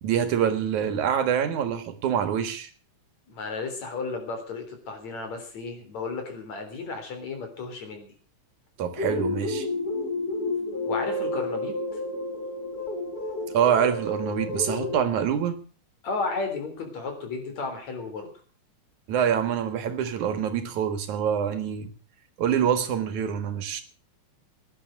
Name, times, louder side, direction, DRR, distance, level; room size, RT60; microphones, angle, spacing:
voice 1, 0.0-2.7 8.8-9.7 13.5-15.6 19.1-21.9 22.4-23.8, right 8 dB, 75° right, 3.0 m, -25 dB
voice 2, 3.3-8.1 10.9-12.0 16.0-18.3, left 4 dB, 65° left, 4.9 m, -33 dB
sound 1, 9.0-15.0, left 2 dB, 30° left, 3.9 m, -30 dB
17.5 x 10.5 x 6.5 m
omnidirectional pair, 3.5 m